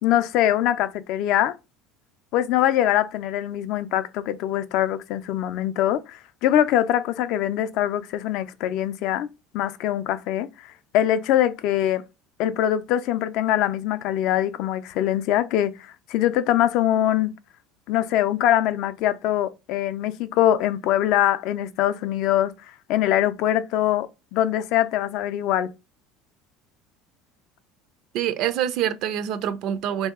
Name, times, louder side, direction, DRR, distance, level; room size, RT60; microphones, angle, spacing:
voice 1, 0.0-1.5 2.3-9.3 9.5-12.0 12.4-17.3 17.9-22.5 22.9-25.7, left 12 dB, 55° left, 0.4 m, -23 dB
voice 2, 28.1-30.1, right 10 dB, 50° right, 0.4 m, -25 dB
3.1 x 2.7 x 3.5 m
cardioid pair, 165°, 0 cm